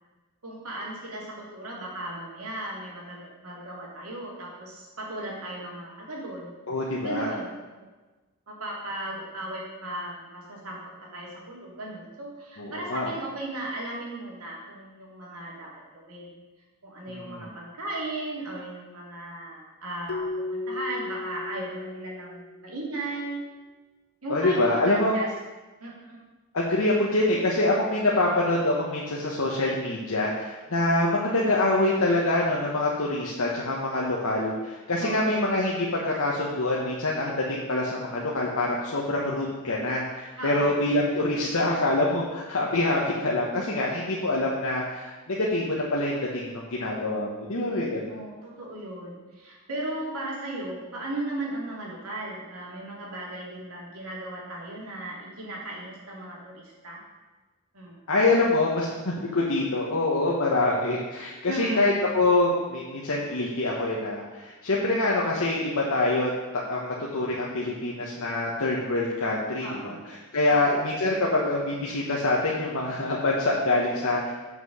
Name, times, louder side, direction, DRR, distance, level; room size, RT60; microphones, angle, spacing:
voice 1, 0.4-6.6 7.0-7.9 8.6-16.4 16.8-23.4 24.2-25.3 25.8-26.2 35.0-35.4 40.4-40.7 48.1-57.0 57.7-58.0 61.5-61.9 69.6-70.1 70.5-70.7, right 1 dB, 85° right, -3 dB, 2.5 m, -36 dB
voice 2, 6.7-7.3 12.6-13.1 17.3-17.5 24.3-25.1 26.5-48.1 58.1-70.0 70.3-74.3, left 2 dB, 70° left, -4 dB, 1.2 m, -25 dB
Keyboard (musical), 20.1-22.9, left 2 dB, 85° left, 0.7 m, -35 dB
7.5 x 6.0 x 6.3 m, 1.2 s
head